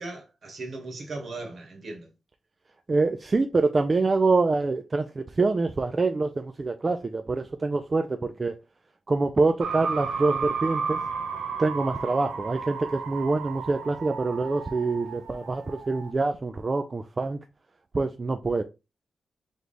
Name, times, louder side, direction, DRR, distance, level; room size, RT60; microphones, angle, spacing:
voice 1, 0.0-2.1, right 2 dB, 50° right, 1.3 m, -38 dB
voice 2, 2.9-8.5 9.1-11.0 11.6-17.4 17.9-18.6, right 3 dB, 25° right, 0.3 m, -25 dB
sound 1, 9.6-16.1, right 5 dB, 85° right, 0.7 m, -33 dB
3.4 x 3.1 x 3.9 m
wide cardioid pair, 155°, 0 cm